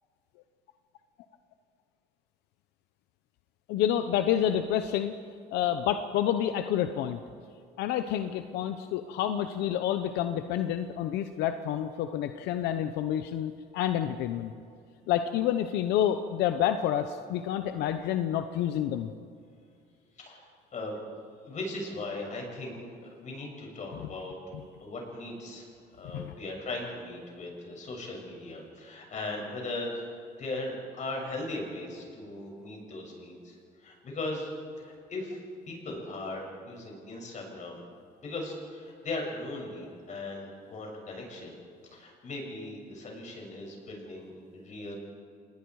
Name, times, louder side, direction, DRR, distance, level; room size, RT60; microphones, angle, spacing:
voice 1, 3.7-5.1 5.5-7.2 7.8-14.5 15.1-19.1 23.9-24.1 26.1-26.3, left 10 dB, 90° left, 9 dB, 0.9 m, -29 dB
voice 2, 20.2-21.0 21.5-22.8 23.2-24.4 24.8-25.7 26.0-30.1 30.4-34.5 34.8-35.4 35.7-37.8 38.2-41.5 41.9-45.0, left 2 dB, 45° left, 0 dB, 7.1 m, -38 dB
27.5 x 20.0 x 4.8 m, 2.3 s
cardioid pair, 110°, 17 cm